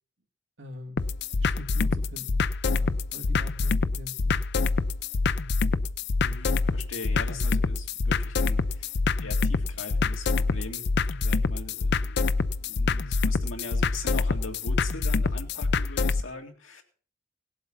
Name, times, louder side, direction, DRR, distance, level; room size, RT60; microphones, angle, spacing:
voice 1, 0.6-1.0 1.4-2.4 2.7-4.4, left 1 dB, 65° right, 2 dB, 2.5 m, -43 dB
sound 1, 1.0-16.2, left 4 dB, 60° left, 0.5 m, -26 dB
voice 2, 6.2-10.9 11.2-16.8, left 2 dB, 80° left, 3 dB, 2.6 m, -41 dB
18.5 x 7.8 x 5.6 m, 0.42 s
head